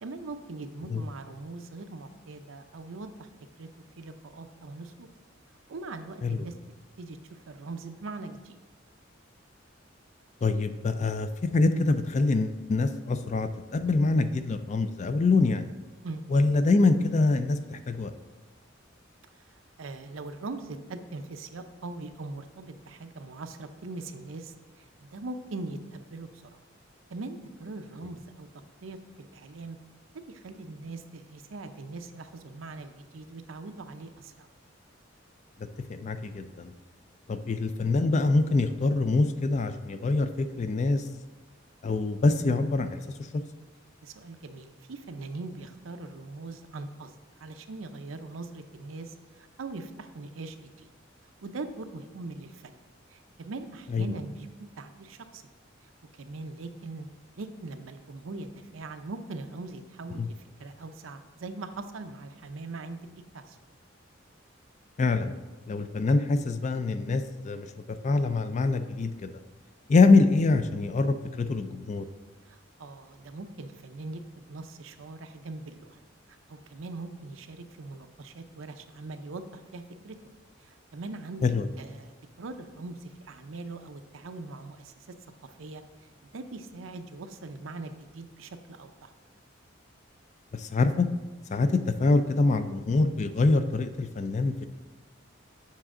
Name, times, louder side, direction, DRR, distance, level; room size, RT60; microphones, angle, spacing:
voice 1, 0.0-3.3 3.6-3.7 4.0-5.1 5.7-6.5 7.0-8.6 16.0-16.2 19.8-26.6 27.1-28.5 28.8-29.8 30.3-34.5 44.0-47.1 47.4-50.9 51.4-52.8 53.1-55.4 55.8-57.1 57.3-63.1 63.3-63.6 72.4-76.0 76.5-80.2 80.6-81.4 81.8-85.1 85.4-89.1, right 3 dB, 85° right, 8 dB, 0.6 m, -41 dB
voice 2, 10.4-15.6 16.3-18.1 35.9-36.7 37.3-41.0 41.8-43.0 43.3-43.4 53.9-54.1 60.2-60.3 65.0-65.3 65.7-67.7 68.0-69.3 69.9-72.1 81.4-81.7 90.5-91.1 91.5-94.7, left 3 dB, 35° left, 10 dB, 0.4 m, -25 dB
7.4 x 5.9 x 3.7 m, 1.3 s
head